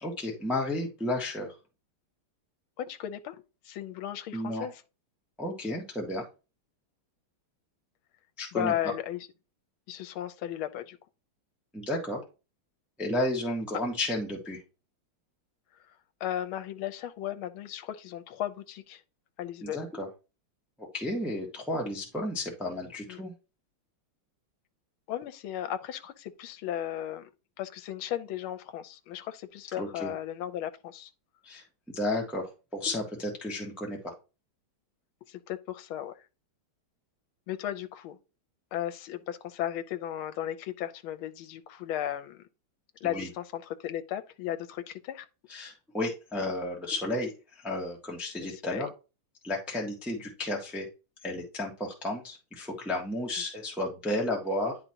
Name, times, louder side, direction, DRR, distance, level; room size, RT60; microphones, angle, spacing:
voice 1, 0.0-1.5 4.3-4.7 5.4-6.2 8.4-8.9 11.7-12.2 13.0-14.6 19.6-20.1 20.8-23.3 29.8-30.1 31.4-34.1 43.0-43.3 45.5-48.9 49.4-50.9 51.2-54.8, left 1 dB, ahead, 1.1 m, -32 dB
voice 2, 2.8-3.4 3.6-4.7 8.5-9.3 9.9-11.0 16.2-19.0 19.4-19.8 23.1-23.2 25.1-27.3 27.6-31.1 35.3-36.1 37.5-38.2 38.7-42.4 43.0-45.3 48.5-48.9, left 11 dB, 80° left, 1.5 m, -35 dB
10.0 x 4.1 x 2.9 m
omnidirectional pair, 2.3 m